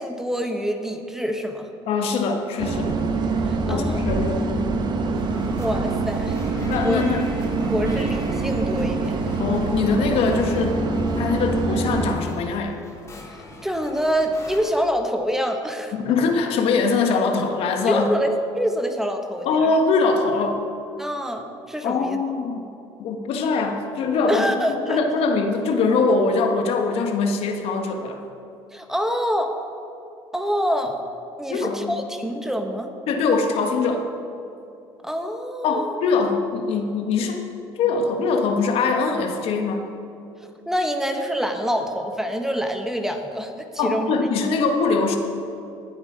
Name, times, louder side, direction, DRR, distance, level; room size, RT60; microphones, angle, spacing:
voice 1, 0.0-1.7 3.4-4.0 5.6-6.4 6.8-7.0 7.6-9.2 13.2-15.9 17.9-19.7 21.0-22.2 24.3-25.0 28.7-29.5 30.3-31.0 31.4-32.9 35.0-36.0 40.7-44.1, equal, 5° right, 5 dB, 1.2 m, -26 dB
voice 2, 1.9-2.9 3.7-4.5 6.7-7.3 7.7-7.9 9.4-10.8 11.2-12.8 15.9-18.1 19.4-20.6 21.8-22.7 23.0-24.5 24.9-28.2 31.5-32.0 33.1-34.1 35.6-37.4 37.8-39.8 43.8-45.2, left 4 dB, 65° left, 4 dB, 1.6 m, -22 dB
sound 1, 2.6-12.2, right 3 dB, 45° right, 1.3 m, -24 dB
sound 2, 5.2-14.6, left 2 dB, 25° left, 3.1 m, -43 dB
19.0 x 8.1 x 5.2 m, 2.6 s
cardioid pair, 100°, 11 cm